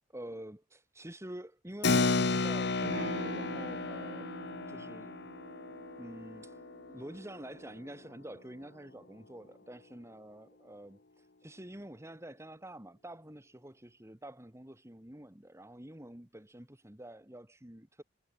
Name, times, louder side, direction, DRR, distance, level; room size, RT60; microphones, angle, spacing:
voice 1, 0.1-4.3 4.7-5.2 6.0-18.0, right 1 dB, 15° right, 2.2 m, -48 dB
Keyboard (musical), 1.8-7.9, left 3 dB, 60° left, 1.3 m, -33 dB
Electric guitar / Strum, 2.8-7.9, right 2 dB, 65° right, 1.8 m, -45 dB
head